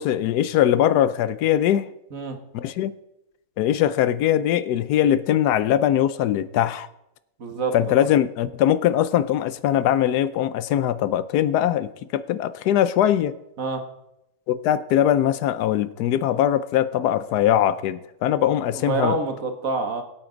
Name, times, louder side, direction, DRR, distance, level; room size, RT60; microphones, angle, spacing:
voice 1, 0.0-1.9 2.5-2.9 3.6-6.9 7.7-13.4 14.5-19.2, left 11 dB, 80° left, 15 dB, 1.2 m, -21 dB
voice 2, 7.4-7.8 13.6-13.8 18.7-20.0, right 3 dB, 60° right, 5 dB, 1.7 m, -26 dB
21.5 x 8.6 x 3.9 m, 0.87 s
omnidirectional pair, 1.7 m